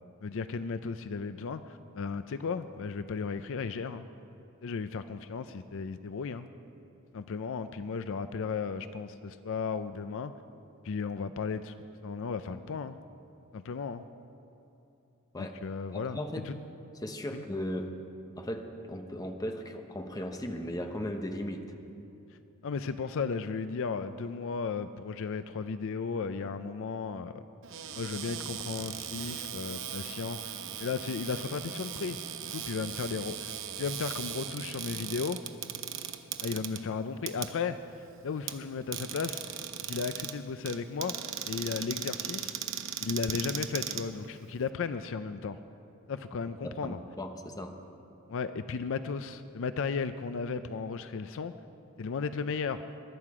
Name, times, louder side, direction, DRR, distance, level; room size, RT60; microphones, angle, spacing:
voice 1, 0.2-4.1 4.6-6.5 7.1-10.3 10.8-11.7 12.0-13.0 13.5-14.0 15.4-16.6 17.3-17.4 22.6-27.4 27.9-30.5 30.8-32.2 32.5-33.5 33.8-35.4 36.4-41.1 41.5-42.5 43.0-45.6 46.1-47.0 48.3-51.5 52.0-52.8, left 5 dB, 65° left, 11 dB, 0.5 m, -35 dB
voice 2, 15.9-16.5 17.0-17.9 18.4-21.6 46.6-47.7, left 1 dB, 15° left, 5 dB, 1.0 m, -37 dB
Cupboard open or close, 27.6-44.7, right 9 dB, 60° right, 0.8 m, -39 dB
21.0 x 11.0 x 4.9 m, 2.9 s
head